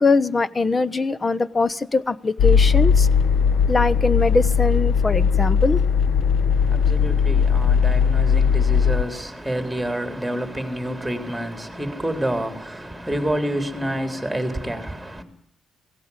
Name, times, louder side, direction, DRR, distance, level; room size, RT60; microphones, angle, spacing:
voice 1, 0.0-3.1 3.7-5.8, left 3 dB, 25° left, 0.9 m, -22 dB
sound 1, 2.4-9.0, left 6 dB, 65° left, 0.9 m, -18 dB
voice 2, 6.5-15.2, right 1 dB, 5° right, 3.8 m, -28 dB
17.0 x 16.5 x 9.8 m
cardioid pair, 90°, 0 cm